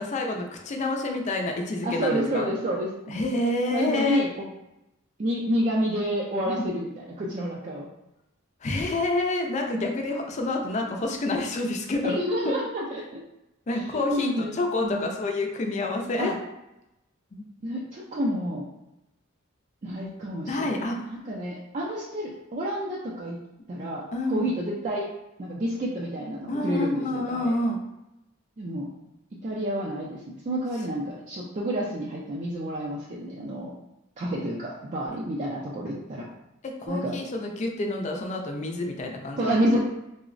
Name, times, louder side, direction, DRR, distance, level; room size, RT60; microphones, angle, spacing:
voice 1, 0.0-2.5 3.1-4.2 6.4-6.7 8.6-12.2 13.7-16.3 17.3-17.4 20.5-21.0 24.1-24.5 26.5-27.8 36.6-39.5, left 2 dB, 35° left, 2 dB, 0.4 m, -28 dB
voice 2, 1.8-3.2 3.7-4.4 5.2-7.9 9.7-9.9 12.0-13.2 13.7-14.6 14.8-15.1 16.2-16.3 17.6-18.6 19.8-23.4 23.7-24.0 24.3-25.1 25.4-27.6 28.6-28.9 29.4-33.7 34.2-36.2 36.9-37.2 39.4-39.8, equal, 35° right, -4 dB, 0.4 m, -29 dB
3.7 x 2.0 x 2.5 m, 0.91 s
head